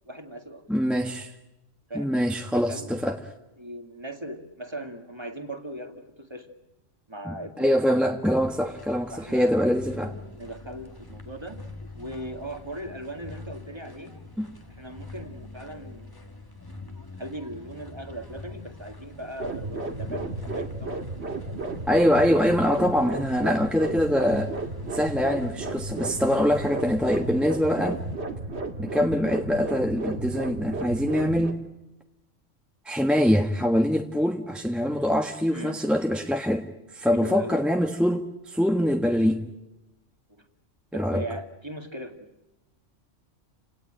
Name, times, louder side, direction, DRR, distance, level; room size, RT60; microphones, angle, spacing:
voice 1, 0.1-0.6 1.9-2.2 2.5-3.2 3.6-6.5 7.1-7.7 9.1-9.7 10.4-11.7 11.9-14.2 14.7-16.3 17.2-21.2 21.4-21.8 35.5-35.9 37.1-37.6 40.3-40.5 40.9-42.3, right 1 dB, 20° right, 5 dB, 2.3 m, -39 dB
voice 2, 0.7-1.3 1.9-3.2 7.2-10.1 14.4-14.5 21.9-24.5 24.9-28.0 28.8-31.6 32.8-36.7 36.9-39.4 40.9-41.2, equal, ahead, 3 dB, 1.3 m, -24 dB
sound 1, 8.3-28.2, left 2 dB, 15° left, 1.8 m, -44 dB
sound 2, 19.4-31.5, right 2 dB, 60° right, 2.4 m, -33 dB
29.5 x 17.5 x 9.0 m, 1.0 s
omnidirectional pair, 1.3 m